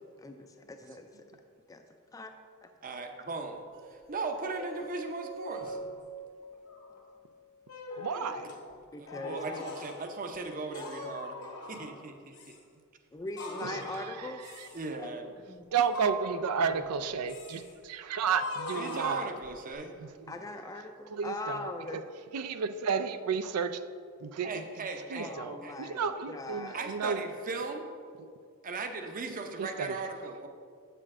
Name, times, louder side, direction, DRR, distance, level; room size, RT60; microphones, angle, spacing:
voice 1, 0.2-1.2 1.7-1.8 2.1-2.3 2.6-2.7 8.9-9.6 13.1-14.4 15.0-15.2 15.5-15.7 19.1-19.2 20.3-22.0 25.2-26.9, left 2 dB, 15° left, 5 dB, 0.4 m, -41 dB
voice 2, 2.8-3.6 3.9-5.8 8.1-8.3 9.0-12.6 14.7-15.3 18.7-20.0 24.4-25.8 26.7-27.9 28.6-30.5, right 3 dB, 40° right, 5 dB, 0.6 m, -38 dB
sound 1, 3.8-7.9, right 3 dB, 60° right, 0.9 m, -45 dB
sound 2, 4.4-4.8 5.4-5.8 6.4-7.0 7.7-8.6 9.1-10.0 10.7-12.0 12.3-12.6 13.4-14.1 14.4-14.9 15.8-16.9 17.3-17.7 18.3-19.7, left 2 dB, 80° left, 1.7 m, -42 dB
voice 3, 8.0-8.6 13.6-14.7 15.7-19.3 20.0-20.1 21.1-22.0 22.3-23.8 24.2-24.6 25.1-27.3 28.2-28.3 29.6-29.9, right 6 dB, 90° right, 11 dB, 0.4 m, -32 dB
7.6 x 6.8 x 3.6 m, 2.2 s
head